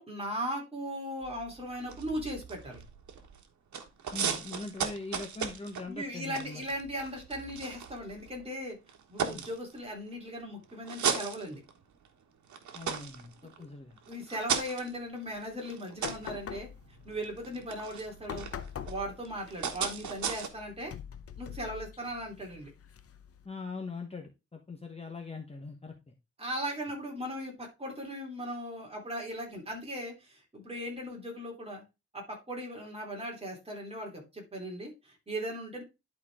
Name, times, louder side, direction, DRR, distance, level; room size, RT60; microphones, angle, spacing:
voice 1, 0.0-2.8 5.9-8.8 9.1-11.6 13.6-13.7 14.1-16.7 17.0-18.5 18.8-20.9 21.4-22.7 26.4-31.8 32.1-35.8, equal, 20° right, 0 dB, 3.3 m, -38 dB
sound 1, 1.2-3.5 3.7-8.4 8.9-10.1 10.6-12.1 12.4-20.5, right 7 dB, 75° right, 1.5 m, -37 dB
voice 2, 4.1-6.6 9.3-9.5 12.7-14.0 23.4-26.1, left 3 dB, 20° left, 2 dB, 1.1 m, -42 dB
sound 2, 16.0-23.5, left 8 dB, 50° left, 0.8 m, -45 dB
11.5 x 4.7 x 3.5 m, 0.25 s
wide cardioid pair, 150°, 29 cm